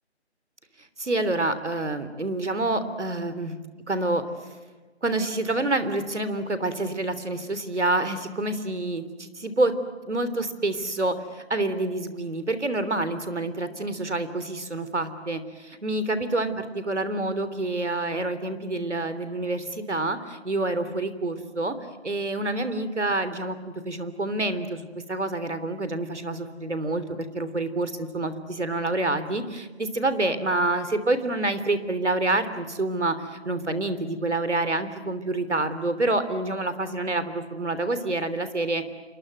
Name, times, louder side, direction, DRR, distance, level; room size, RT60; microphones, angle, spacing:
voice 1, 1.0-4.2 5.0-9.7 10.0-21.7 22.0-24.8 25.1-38.9, right 2 dB, 85° right, 11 dB, 3.4 m, -27 dB
28.0 x 25.5 x 8.0 m, 1.3 s
figure-of-eight pair, 175°, 34 cm